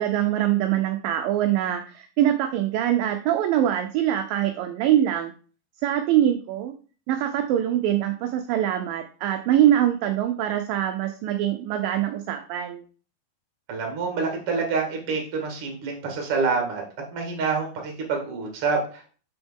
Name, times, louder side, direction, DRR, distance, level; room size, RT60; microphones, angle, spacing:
voice 1, 0.0-5.3 5.8-6.7 7.1-12.8, right 11 dB, 80° right, 6 dB, 2.2 m, -23 dB
voice 2, 13.7-16.8 17.1-19.1, right 4 dB, 45° right, 1 dB, 2.3 m, -27 dB
7.1 x 5.9 x 3.6 m, 0.40 s
omnidirectional pair, 4.4 m